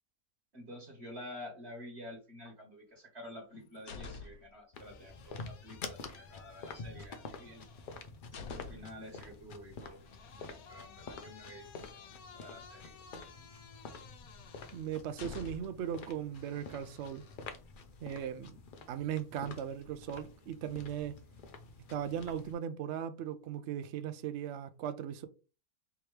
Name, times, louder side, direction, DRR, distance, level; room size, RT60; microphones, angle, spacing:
voice 1, 0.5-7.7 8.3-13.0, left 1 dB, 45° right, 1.6 m, -50 dB
sound 1, 3.3-4.6 4.9-9.0 10.0-15.9 16.3-17.4, left 5 dB, 75° left, 1.2 m, -52 dB
sound 2, 4.7-22.5, left 4 dB, 55° left, 0.6 m, -49 dB
voice 2, 14.7-17.2 18.0-18.6 18.9-21.2 21.9-25.3, right 9 dB, 65° right, 0.7 m, -38 dB
4.4 x 3.6 x 3.2 m
omnidirectional pair, 1.6 m